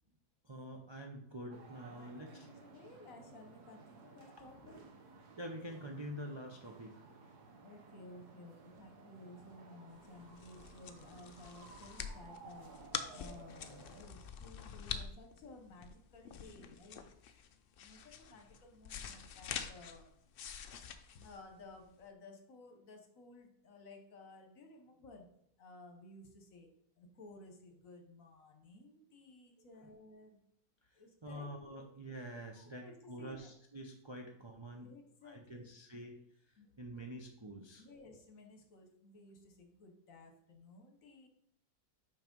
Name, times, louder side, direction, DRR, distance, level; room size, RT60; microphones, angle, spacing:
voice 1, 0.4-2.5 4.2-4.3 5.4-7.0 29.6-29.9 30.8-34.9 35.2-36.2 36.5-37.8, equal, 30° right, 1 dB, 0.5 m, -47 dB
sound 1, 1.5-14.0, right 4 dB, 90° right, 1.6 m, -57 dB
voice 2, 1.9-4.8 7.6-12.7 13.1-17.4 17.8-20.1 21.1-25.3 25.6-26.7 27.0-30.4 30.9-31.5 32.5-33.5 34.8-35.7 36.6-36.7 37.8-41.3, left 2 dB, 60° left, 4 dB, 1.4 m, -56 dB
sound 2, 10.0-22.0, left 7 dB, 80° left, 0.5 m, -46 dB
5.9 x 5.0 x 5.3 m, 0.70 s
omnidirectional pair, 1.6 m